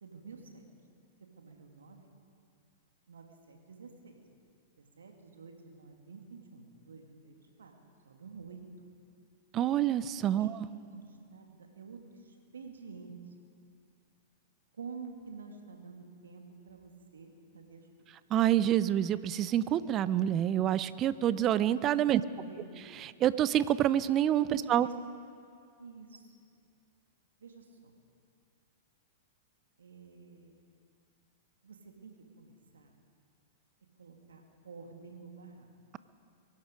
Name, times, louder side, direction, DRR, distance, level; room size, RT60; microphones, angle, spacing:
voice 1, 0.0-0.7 1.4-2.1 3.1-4.2 4.8-7.7 8.0-8.9 10.4-10.5 10.9-13.1 14.7-17.9 22.1-22.8 24.5-24.9 25.8-26.5 27.4-27.7 29.8-30.5 31.6-32.9 34.0-35.7, right 5 dB, 80° right, 3 dB, 2.2 m, -49 dB
voice 2, 9.5-10.5 18.3-22.2 23.0-24.9, right 11 dB, 35° right, 16 dB, 0.6 m, -27 dB
23.0 x 11.5 x 5.1 m, 2.4 s
hypercardioid pair, 105°, 0 cm